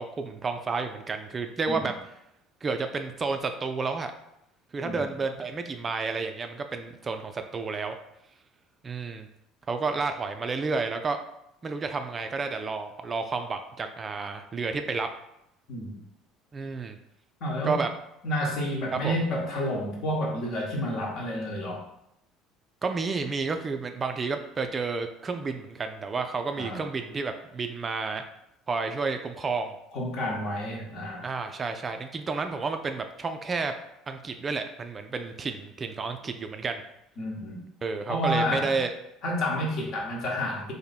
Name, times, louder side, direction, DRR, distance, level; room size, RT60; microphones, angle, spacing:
voice 1, 0.0-1.9 2.6-4.1 4.7-8.0 8.8-9.3 9.7-11.2 11.6-15.1 16.5-17.0 17.6-17.9 18.9-19.1 22.8-28.2 28.7-29.7 31.2-33.7 34.1-36.8 37.8-38.9, right 4 dB, 30° right, 6 dB, 0.3 m, -31 dB
voice 2, 17.4-17.8 18.2-21.8 26.6-26.8 29.9-31.2 37.2-37.6 38.1-38.8 39.2-40.7, equal, 50° left, -1 dB, 1.0 m, -30 dB
2.9 x 2.6 x 4.1 m, 0.80 s
figure-of-eight pair, 60°, 0 cm